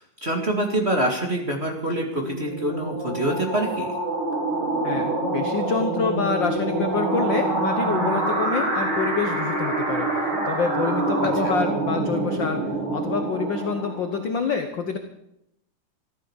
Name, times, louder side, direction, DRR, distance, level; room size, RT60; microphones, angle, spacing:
voice 1, 0.0-3.9 11.2-11.5, right 1 dB, 25° right, 2 dB, 1.9 m, -26 dB
sound 1, 1.9-14.3, right 2 dB, 90° right, 6.6 m, -26 dB
voice 2, 4.8-10.1 10.4-12.6 12.9-15.0, left 5 dB, 60° left, 6 dB, 1.3 m, -27 dB
14.0 x 14.0 x 7.2 m, 0.79 s
omnidirectional pair, 3.6 m